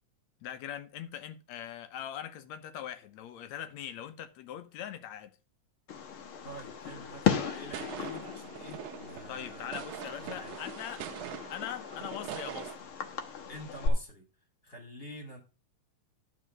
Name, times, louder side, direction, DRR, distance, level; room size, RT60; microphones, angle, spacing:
voice 1, 0.4-5.3 9.3-11.0 11.5-12.7, left 10 dB, 70° left, 2.1 m, -41 dB
Fireworks, 5.9-13.9, left 7 dB, 55° left, 1.8 m, -36 dB
voice 2, 6.4-10.5 13.5-14.3 14.6-15.4, right 1 dB, 20° left, 2.5 m, -47 dB
sound 1, 7.7-12.8, right 13 dB, 90° right, 2.2 m, -43 dB
11.0 x 5.0 x 6.4 m
omnidirectional pair, 3.4 m